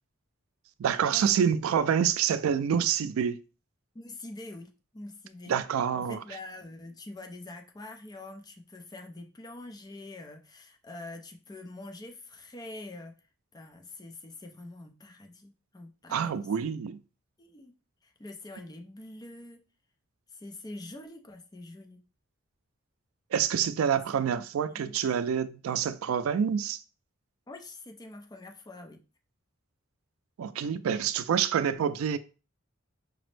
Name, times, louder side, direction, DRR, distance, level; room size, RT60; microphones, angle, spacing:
voice 1, 0.8-3.4 5.5-6.2 16.1-17.0 23.3-26.8 30.4-32.2, right 8 dB, 90° right, 0.3 m, -27 dB
voice 2, 3.9-5.5 5.9-13.1 13.5-16.7 17.4-17.7 18.0-19.6 20.3-22.0 24.7-25.0 27.5-29.0, left 2 dB, 20° left, 0.4 m, -45 dB
5.0 x 2.0 x 3.1 m
head